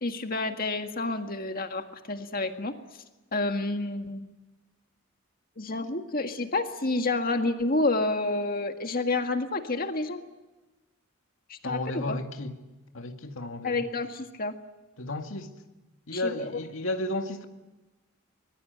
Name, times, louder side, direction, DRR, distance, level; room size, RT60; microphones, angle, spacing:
voice 1, 0.0-2.8 3.3-4.3 5.6-10.2 11.5-12.2 13.6-14.6 16.1-16.6, left 2 dB, 45° left, 1.8 m, -29 dB
voice 2, 11.6-12.6 12.9-13.8 15.0-15.5 16.1-17.4, left 2 dB, 70° left, 2.2 m, -33 dB
24.0 x 22.0 x 9.3 m
head